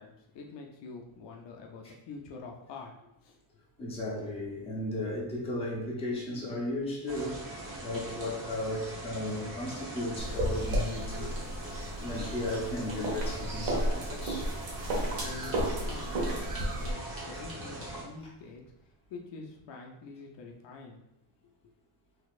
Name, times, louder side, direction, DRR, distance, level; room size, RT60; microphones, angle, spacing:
voice 1, 0.0-3.4 14.9-21.0 21.4-21.5, left 3 dB, 60° left, 1 dB, 0.6 m, -46 dB
voice 2, 3.8-7.4 7.8-11.3 12.0-14.5, left 1 dB, 10° left, -5 dB, 0.6 m, -35 dB
sound 1, 7.1-18.0, right 1 dB, 30° right, 1.0 m, -42 dB
sound 2, 10.0-19.0, right 3 dB, 45° right, 0.7 m, -48 dB
sound 3, 10.2-16.9, right 1 dB, 70° right, 1.0 m, -33 dB
4.0 x 2.8 x 2.4 m, 0.84 s
cardioid pair, 170°, 48 cm